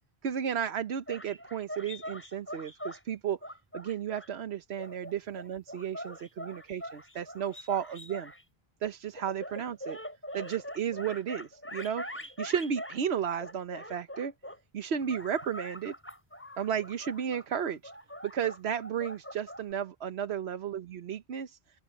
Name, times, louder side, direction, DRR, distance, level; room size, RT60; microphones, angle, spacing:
voice 1, 0.2-3.4 3.7-8.3 8.8-10.0 10.3-14.3 14.7-15.9 16.6-17.9 18.2-21.6, right 8 dB, 80° right, 1.1 m, -33 dB
sound 1, 1.1-3.0 3.4-4.3 4.8-8.4 9.2-13.0 13.4-14.6 15.0-19.7, equal, 10° left, 5.2 m, -43 dB
open air
omnidirectional pair, 1.1 m